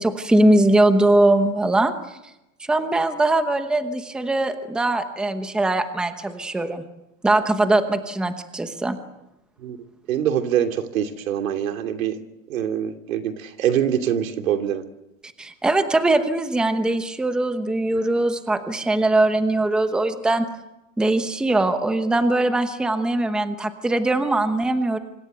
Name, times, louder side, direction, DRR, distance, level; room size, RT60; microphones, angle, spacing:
voice 1, 0.0-2.2 2.7-6.8 7.2-9.0 15.4-20.5 21.0-25.0, right 2 dB, ahead, 8 dB, 1.0 m, -21 dB
voice 2, 10.1-12.2 12.5-14.8, right 9 dB, 85° right, 6 dB, 3.0 m, -24 dB
26.0 x 25.5 x 8.0 m, 0.92 s
supercardioid pair, 170°, 39 cm